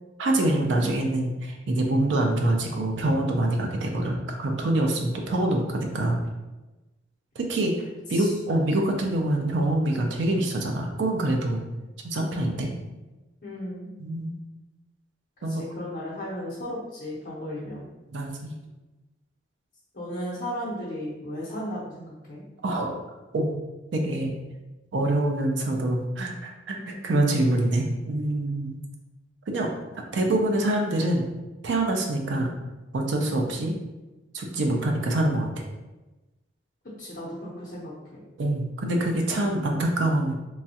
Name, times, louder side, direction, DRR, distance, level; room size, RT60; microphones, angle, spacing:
voice 1, 0.2-6.2 7.4-7.7 8.1-11.6 12.0-12.7 14.0-14.3 15.4-15.6 18.1-18.5 22.6-23.0 23.3-23.6 23.9-24.3 24.9-28.8 29.5-29.7 30.1-31.3 31.6-32.5 32.9-33.8 34.3-35.5 38.4-40.4, right 1 dB, 80° right, 1 dB, 0.4 m, -25 dB
voice 2, 13.4-13.9 15.5-17.9 19.9-22.4 26.8-27.1 37.0-38.2, equal, 45° left, -9 dB, 0.7 m, -35 dB
3.0 x 2.3 x 2.8 m, 1.1 s
head